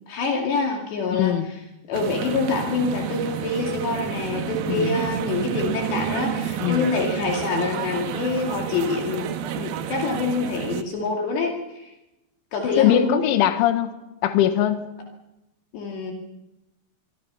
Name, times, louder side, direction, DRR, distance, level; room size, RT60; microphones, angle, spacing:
voice 1, 0.1-1.6 1.9-9.3 9.6-11.9 12.5-13.3 15.7-16.1, left 4 dB, 65° left, 1 dB, 4.4 m, -26 dB
voice 2, 1.1-1.5 4.8-5.0 6.6-6.9 12.8-13.9 14.2-14.8, left 11 dB, 80° left, 9 dB, 3.9 m, -21 dB
sound 1, 1.9-10.8, right 9 dB, 65° right, 2.6 m, -30 dB
26.0 x 24.5 x 5.7 m, 0.95 s
omnidirectional pair, 5.6 m